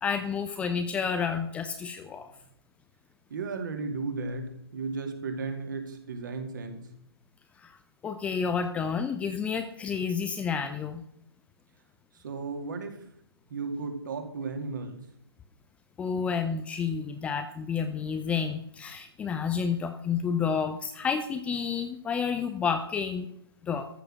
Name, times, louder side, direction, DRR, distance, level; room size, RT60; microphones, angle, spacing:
voice 1, 0.0-2.3 7.6-7.8 8.0-11.0 16.0-23.3 23.6-23.9, left 6 dB, 10° left, 7 dB, 0.6 m, -30 dB
voice 2, 3.3-6.9 12.1-13.0 13.5-15.0, right 4 dB, 50° right, 5 dB, 2.6 m, -35 dB
14.0 x 6.9 x 6.6 m, 0.73 s
figure-of-eight pair, 130°, 13 cm